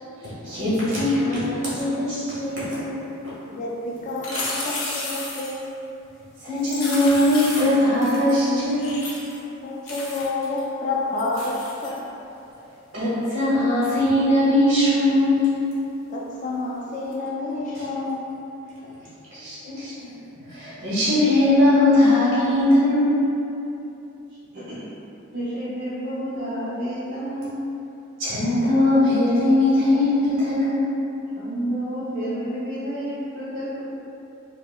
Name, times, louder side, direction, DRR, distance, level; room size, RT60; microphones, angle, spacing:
voice 1, 0.4-3.1 6.4-8.9 12.9-15.4 19.3-19.9 20.5-23.2 28.2-30.9, left 1 dB, 65° right, -11 dB, 1.5 m, -20 dB
voice 2, 3.5-5.7 9.6-12.0 16.1-18.3, left 2 dB, 35° left, -4 dB, 0.3 m, -29 dB
sound 1, 4.1-5.7 6.6-8.4 8.8-9.4 9.9-10.6 11.2-12.0 17.1-17.2, left 2 dB, 80° left, 0.7 m, -33 dB
voice 3, 24.5-24.8 25.3-27.5 31.4-33.8, right 1 dB, 50° right, -14 dB, 0.7 m, -30 dB
4.5 x 2.0 x 2.3 m, 2.8 s
head